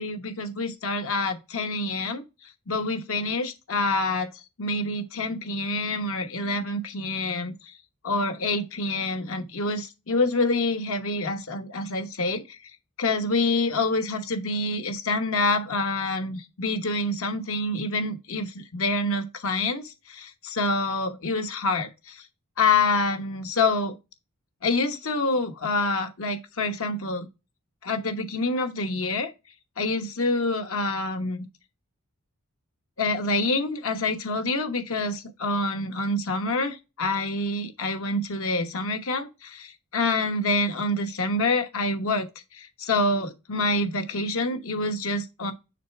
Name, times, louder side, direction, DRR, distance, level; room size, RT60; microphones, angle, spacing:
voice 1, 0.0-2.2 2.7-4.3 4.6-7.7 8.0-12.6 13.0-22.2 22.6-24.0 24.6-27.3 27.8-29.3 29.8-31.4 33.0-42.3 42.5-45.5, left 2 dB, 65° left, 1.2 m, -27 dB
6.6 x 4.1 x 4.6 m
head